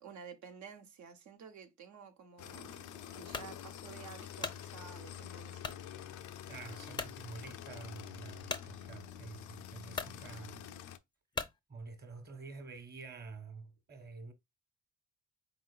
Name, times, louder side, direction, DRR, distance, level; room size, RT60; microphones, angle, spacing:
voice 1, 0.0-2.8 3.1-5.7, right 6 dB, 70° right, 1.1 m, -52 dB
sound 1, 2.4-11.0, left 10 dB, 80° left, 0.5 m, -47 dB
sound 2, 3.3-3.5 4.1-4.6 5.6-5.8 6.4-6.5 6.9-7.2 8.5-8.7 9.5-9.6 9.9-10.2 11.3-11.6, left 4 dB, 15° left, 0.5 m, -39 dB
voice 2, 6.5-10.7 11.7-14.3, right 4 dB, 35° right, 1.2 m, -48 dB
4.0 x 3.9 x 2.3 m
cardioid pair, 85°, 30 cm